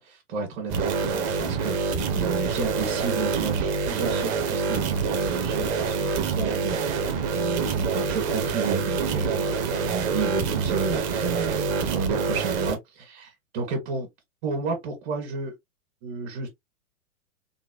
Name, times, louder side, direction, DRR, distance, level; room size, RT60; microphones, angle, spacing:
voice 1, 0.0-14.1 14.4-15.5 16.0-16.5, right 5 dB, 45° right, 1.5 m, -32 dB
sound 1, 0.7-12.8, right 5 dB, 25° right, 0.6 m, -26 dB
3.8 x 2.1 x 2.8 m
hypercardioid pair, 140°, 40 cm